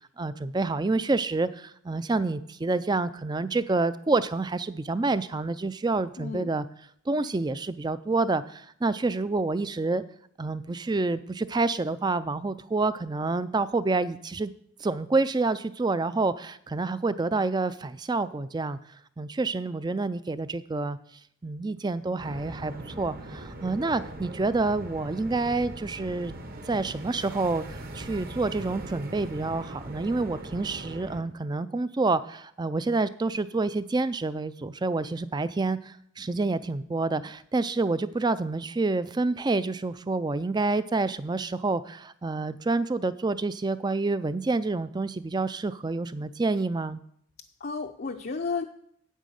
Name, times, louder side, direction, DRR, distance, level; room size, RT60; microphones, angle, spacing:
voice 1, 0.2-6.7 7.1-10.0 10.4-14.5 14.8-18.8 19.2-21.0 21.4-26.4 26.6-47.0, right 3 dB, 20° right, 15 dB, 0.3 m, -28 dB
voice 2, 6.2-6.5 47.6-48.6, left 4 dB, 45° left, 3 dB, 0.5 m, -32 dB
sound 1, 22.2-31.2, right 1 dB, 45° right, 1.0 m, -40 dB
9.0 x 8.4 x 6.4 m, 0.68 s
head